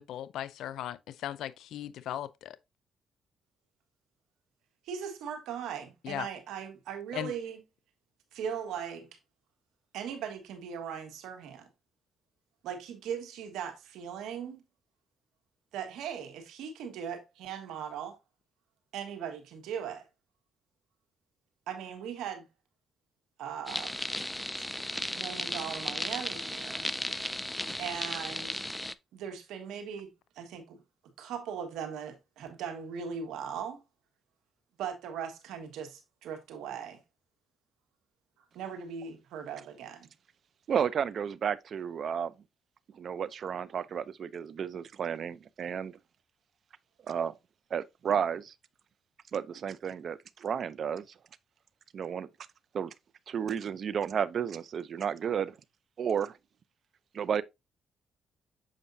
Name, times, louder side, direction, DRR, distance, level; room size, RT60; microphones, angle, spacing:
voice 1, 0.0-2.6 6.0-6.3 7.1-7.3, left 12 dB, 80° left, 0.4 m, -37 dB
voice 2, 4.8-7.6 8.3-9.1 9.9-11.7 12.6-14.6 15.7-18.2 18.9-20.1 21.7-22.5 23.4-24.1 25.1-26.9 27.8-28.6 29.1-30.8 31.2-33.8 34.8-37.0 38.5-40.1, right 8 dB, 85° right, 1.5 m, -39 dB
sound 1, 23.7-28.9, left 1 dB, 5° left, 0.4 m, -35 dB
voice 3, 40.7-42.3 42.9-46.0 47.1-47.4 47.7-48.5 49.3-51.1 51.9-52.3 52.7-52.9 53.3-55.6 56.0-56.4 57.1-57.4, right 7 dB, 55° right, 0.5 m, -32 dB
7.3 x 5.3 x 2.7 m
cardioid pair, 90°, 0 cm